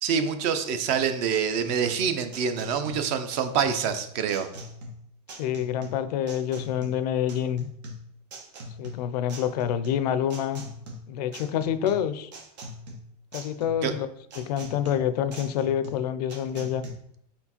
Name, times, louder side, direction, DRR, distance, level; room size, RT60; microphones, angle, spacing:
voice 1, 0.0-4.5 13.8-13.9, right 7 dB, 35° right, 9 dB, 0.4 m, -26 dB
sound 1, 0.9-16.9, equal, 85° right, 1.2 m, -42 dB
voice 2, 5.3-7.7 8.8-10.6 11.1-12.3 13.3-14.1 14.4-16.8, left 9 dB, 70° left, 13 dB, 0.4 m, -27 dB
4.3 x 3.9 x 2.9 m, 0.70 s
supercardioid pair, 160°, 21 cm